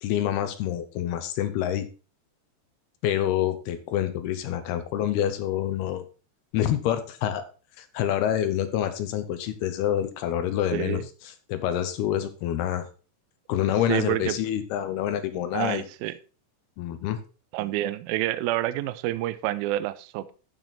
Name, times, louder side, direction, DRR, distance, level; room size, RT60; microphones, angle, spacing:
voice 1, 0.0-1.9 3.0-6.0 6.5-7.4 7.8-11.0 11.5-12.9 13.5-15.8 16.8-17.2, left 11 dB, 75° left, 10 dB, 2.7 m, -27 dB
voice 2, 10.7-11.0 13.9-14.4 15.5-16.1 17.5-20.3, right 14 dB, 85° right, 14 dB, 2.2 m, -28 dB
12.5 x 6.3 x 4.2 m, 0.35 s
omnidirectional pair, 5.0 m